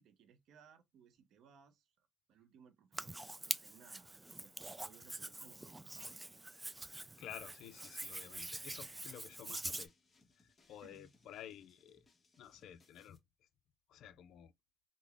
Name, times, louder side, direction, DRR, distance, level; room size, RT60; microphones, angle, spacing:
voice 1, 0.0-6.3 10.8-11.1, right 7 dB, 80° right, 0.6 m, -64 dB
Hands, 2.9-9.9, right 2 dB, 15° right, 0.3 m, -45 dB
voice 2, 7.2-9.9 10.7-12.0 12.4-13.2 13.9-14.5, left 10 dB, 80° left, 0.4 m, -52 dB
sound 1, 7.2-13.2, left 3 dB, 35° left, 1.0 m, -71 dB
3.7 x 2.0 x 3.3 m
cardioid pair, 90°, 0 cm